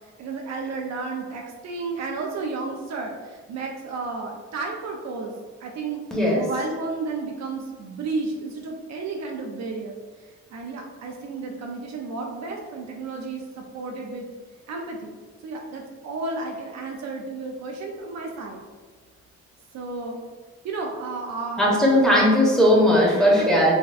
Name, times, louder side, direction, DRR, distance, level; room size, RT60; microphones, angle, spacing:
voice 1, 0.0-5.3 5.6-6.0 6.3-14.3 14.7-15.1 15.4-18.6 19.7-20.2 20.6-21.8 23.1-23.7, right 3 dB, 60° right, 1 dB, 0.5 m, -32 dB
voice 2, 6.1-6.4 21.6-23.7, equal, ahead, -5 dB, 0.9 m, -18 dB
4.0 x 2.2 x 2.4 m, 1.4 s
cardioid pair, 90°, 30 cm